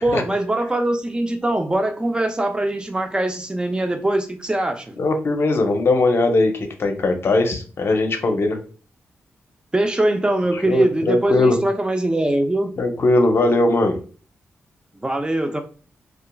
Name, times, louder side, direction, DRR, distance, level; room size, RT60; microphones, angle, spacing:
voice 1, 0.0-4.9 9.7-12.7 14.9-15.6, right 1 dB, 20° right, 0.5 m, -22 dB
voice 2, 5.0-8.6 10.7-11.6 12.8-14.0, left 2 dB, 55° left, 0.6 m, -19 dB
2.8 x 2.3 x 2.2 m
cardioid pair, 60°, 5 cm